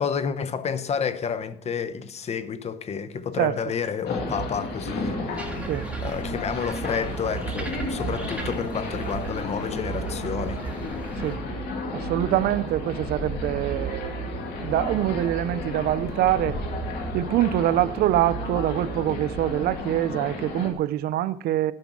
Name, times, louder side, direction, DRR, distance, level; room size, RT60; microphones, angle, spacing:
voice 1, 0.0-5.4 6.0-10.6, left 6 dB, 40° left, 0.7 m, -30 dB
sound 1, 4.1-20.7, left 3 dB, 70° left, 2.1 m, -33 dB
sound 2, 4.2-20.1, right 9 dB, 50° right, 1.4 m, -37 dB
sound 3, 5.4-11.4, right 1 dB, 10° right, 1.8 m, -39 dB
voice 2, 11.9-14.1 14.6-16.6 17.1-21.7, right 13 dB, 70° right, 0.5 m, -24 dB
12.0 x 5.3 x 6.1 m
cardioid pair, 110°, 17 cm